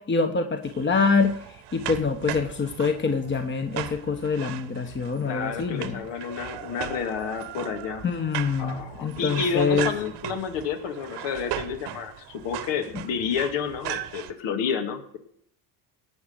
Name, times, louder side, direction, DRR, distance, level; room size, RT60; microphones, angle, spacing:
voice 1, 0.0-1.4 1.7-6.0 8.0-9.9, left 4 dB, 25° left, 6 dB, 1.2 m, -25 dB
sound 1, 0.6-14.3, right 12 dB, 65° right, 1.3 m, -37 dB
voice 2, 5.2-8.1 8.6-15.0, left 6 dB, 75° left, 6 dB, 2.2 m, -30 dB
18.5 x 6.1 x 6.6 m, 0.66 s
supercardioid pair, 80°, 44 cm